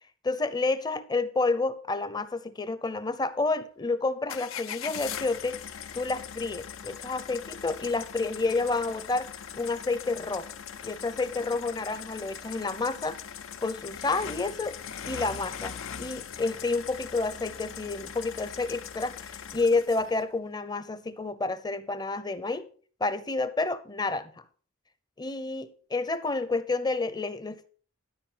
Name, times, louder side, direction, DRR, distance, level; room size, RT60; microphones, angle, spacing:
voice 1, 0.2-5.6 5.9-9.3 9.6-10.5 10.8-13.2 13.6-14.8 15.0-22.6 23.0-24.3 25.2-27.7, left 3 dB, 20° left, 0.7 m, -29 dB
sound 1, 4.3-20.2, left 8 dB, 75° left, 0.6 m, -41 dB
12.0 x 5.0 x 5.6 m
head